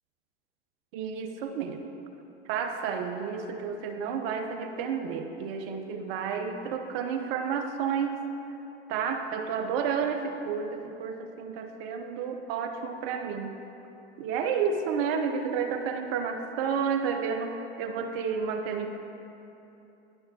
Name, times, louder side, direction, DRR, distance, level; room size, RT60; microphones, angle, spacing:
voice 1, 0.9-1.8 2.5-8.2 8.9-13.5 14.2-19.0, right 6 dB, 60° right, 5 dB, 0.8 m, -31 dB
11.0 x 5.6 x 2.8 m, 3.0 s
hypercardioid pair, 85°, 33 cm